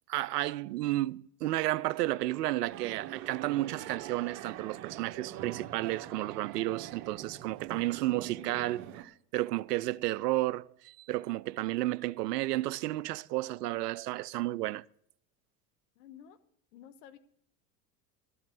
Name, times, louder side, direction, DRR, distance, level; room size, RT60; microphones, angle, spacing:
voice 1, 0.1-14.8, right 16 dB, 85° right, 0.6 m, -32 dB
sound 1, 2.7-9.0, right 11 dB, 65° right, 1.2 m, -44 dB
voice 2, 15.9-16.4 16.7-17.2, left 9 dB, 70° left, 1.4 m, -52 dB
13.0 x 5.7 x 9.2 m
hypercardioid pair, 95°, 47 cm